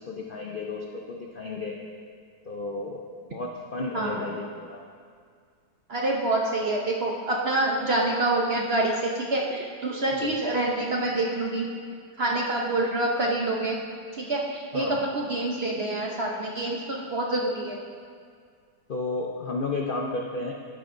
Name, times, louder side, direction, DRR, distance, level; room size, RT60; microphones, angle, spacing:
voice 1, 0.0-1.8 2.4-3.0 3.3-4.8 10.2-10.3 14.7-15.1 18.9-20.5, left 3 dB, 70° left, 0 dB, 0.5 m, -33 dB
voice 2, 5.9-11.7 12.2-13.8 14.1-17.8, right 2 dB, 55° right, -1 dB, 0.7 m, -26 dB
11.5 x 9.7 x 2.6 m, 2.1 s
omnidirectional pair, 1.9 m